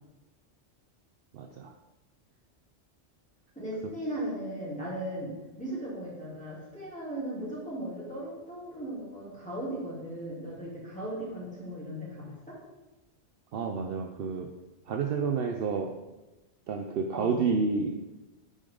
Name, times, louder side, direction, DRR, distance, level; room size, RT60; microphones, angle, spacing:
voice 1, 1.3-1.7 13.5-14.5 14.9-16.0 16.7-18.0, right 5 dB, 60° right, 4 dB, 0.7 m, -30 dB
voice 2, 3.5-12.6 17.1-17.3, right 1 dB, 5° left, -8 dB, 2.8 m, -37 dB
8.6 x 5.4 x 3.7 m, 1.1 s
omnidirectional pair, 1.2 m